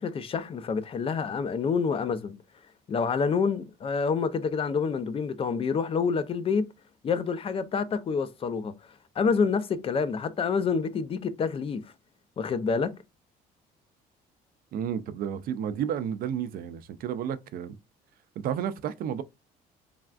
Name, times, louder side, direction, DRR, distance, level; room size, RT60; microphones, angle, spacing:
voice 1, 0.0-2.3 2.9-6.7 7.0-8.8 9.2-11.9 12.4-12.9, left 5 dB, 35° left, 0.4 m, -27 dB
voice 2, 14.7-17.8 18.4-19.2, right 9 dB, 60° right, 0.4 m, -31 dB
3.3 x 2.3 x 2.4 m
cardioid pair, 110°, 17 cm